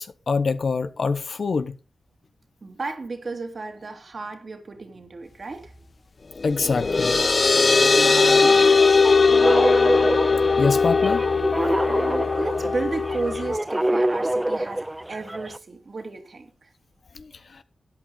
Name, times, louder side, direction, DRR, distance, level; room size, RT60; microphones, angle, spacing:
voice 1, 0.0-1.8 6.4-7.1 10.6-11.2 17.2-17.3, left 4 dB, 65° left, 0.9 m, -24 dB
voice 2, 2.6-5.7 7.9-9.0 9.3-10.2 11.9-16.7, right 3 dB, 60° right, 2.7 m, -34 dB
sound 1, 6.4-13.6, left 4 dB, 50° left, 0.6 m, -19 dB
sound 2, 8.7-15.6, right 1 dB, 15° right, 0.6 m, -26 dB
13.0 x 8.8 x 3.9 m
cardioid pair, 45°, 0 cm